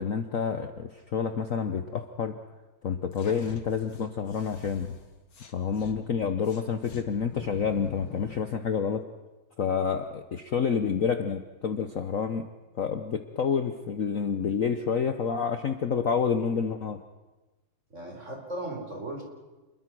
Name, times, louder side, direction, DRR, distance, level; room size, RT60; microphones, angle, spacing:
voice 1, 0.0-2.3 2.8-4.9 5.5-9.0 9.6-12.5 12.8-17.0, left 6 dB, 50° left, 8 dB, 1.2 m, -28 dB
sound 1, 3.1-6.0 6.4-8.5, left 5 dB, 85° left, 2.8 m, -46 dB
voice 2, 17.9-19.2, right 1 dB, 35° right, 2 dB, 4.7 m, -37 dB
28.5 x 21.5 x 6.2 m, 1.2 s
omnidirectional pair, 2.2 m